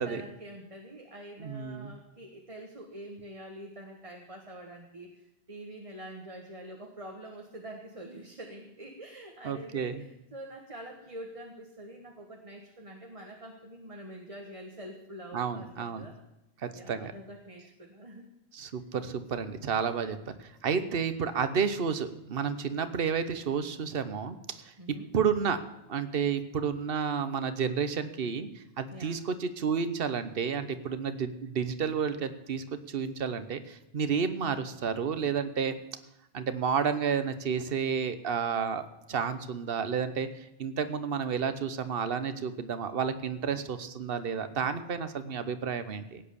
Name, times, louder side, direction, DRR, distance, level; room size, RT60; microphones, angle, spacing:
voice 1, 0.0-16.2 16.7-18.2 24.8-25.1 28.9-29.2, right 1 dB, 30° right, 2 dB, 1.5 m, -46 dB
voice 2, 1.4-1.9 9.4-10.0 15.3-16.1 16.6-17.1 18.5-24.4 25.1-25.6 25.9-28.5 28.8-35.8 36.3-38.8 39.1-40.3 40.6-46.2, right 6 dB, 65° right, 11 dB, 1.2 m, -31 dB
17.0 x 9.3 x 6.9 m, 0.92 s
omnidirectional pair, 1.1 m